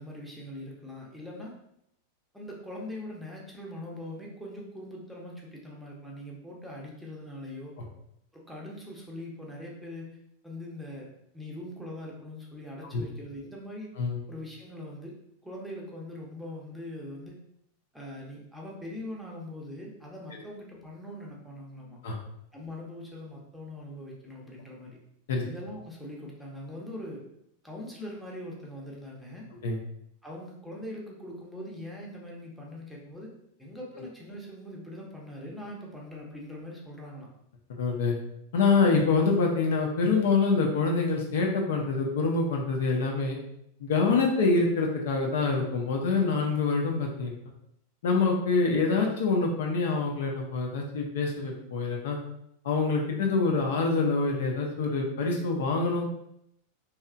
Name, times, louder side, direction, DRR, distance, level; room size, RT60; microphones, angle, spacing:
voice 1, 0.0-1.5 2.3-7.7 8.3-10.2 10.4-11.1 11.3-13.9 14.3-15.1 15.4-17.4 17.9-22.0 22.5-25.0 25.5-27.2 27.6-29.5 30.2-33.3 33.6-37.3, left 1 dB, ahead, -3 dB, 0.6 m, -42 dB
voice 2, 37.7-38.2 38.5-43.4 43.8-47.3 48.0-52.2 52.6-56.0, left 4 dB, 55° left, 0 dB, 0.4 m, -25 dB
2.8 x 2.3 x 2.4 m, 0.77 s
figure-of-eight pair, 90°, 0 cm